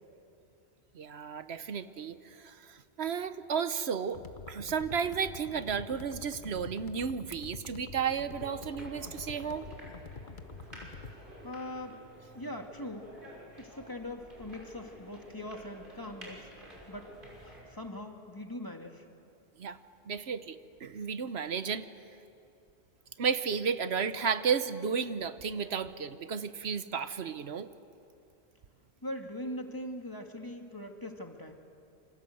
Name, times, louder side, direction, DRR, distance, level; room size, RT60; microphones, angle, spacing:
voice 1, 0.9-4.2 4.5-9.6 19.6-19.8 20.1-21.9 23.2-27.7, right 6 dB, 75° right, 12 dB, 1.2 m, -33 dB
sound 1, 4.1-11.2, left 4 dB, 50° left, 1.4 m, -47 dB
sound 2, 8.3-17.6, equal, 50° right, 6.3 m, -51 dB
voice 2, 11.4-12.0 12.3-13.1 13.5-16.5 16.9-17.1 17.4-19.1 29.0-31.5, left 1 dB, 20° left, 3 dB, 2.1 m, -41 dB
28.5 x 26.0 x 7.9 m, 2.7 s
omnidirectional pair, 1.1 m